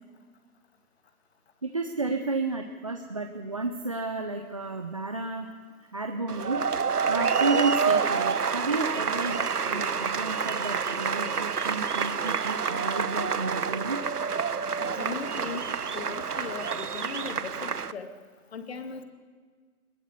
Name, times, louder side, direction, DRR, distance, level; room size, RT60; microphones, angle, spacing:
voice 1, 1.6-5.5 5.9-6.6 7.1-14.0, right 3 dB, 20° right, 5 dB, 0.6 m, -32 dB
sound 1, 6.3-17.9, right 6 dB, 85° right, 1.0 m, -28 dB
voice 2, 14.8-18.2 18.5-19.0, left 5 dB, 45° left, 8 dB, 2.2 m, -38 dB
21.0 x 19.0 x 8.3 m, 1.5 s
figure-of-eight pair, 155°, 45 cm